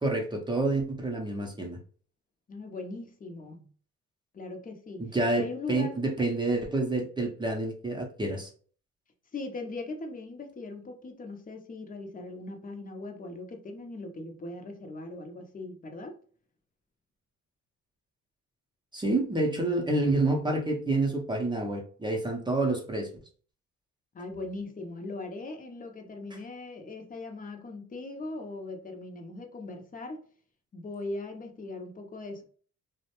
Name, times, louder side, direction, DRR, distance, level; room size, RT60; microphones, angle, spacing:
voice 1, 0.0-1.8 5.0-8.5 18.9-23.1, right 2 dB, 15° right, 0.6 m, -28 dB
voice 2, 2.5-3.7 4.3-6.4 9.3-16.2 24.1-30.2 30.7-32.4, left 2 dB, 30° left, 0.6 m, -40 dB
2.5 x 2.1 x 2.9 m
cardioid pair, 90°, 30 cm